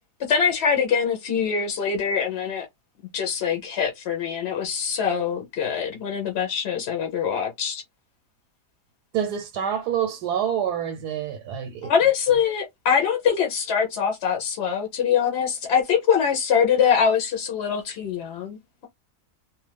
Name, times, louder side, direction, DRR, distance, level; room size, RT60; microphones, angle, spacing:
voice 1, 0.3-2.7 3.1-7.8 11.8-18.6, left 7 dB, 60° left, 0.7 m, -23 dB
voice 2, 9.1-11.9, right 9 dB, 90° right, 1.2 m, -27 dB
2.6 x 2.4 x 3.3 m
omnidirectional pair, 1.7 m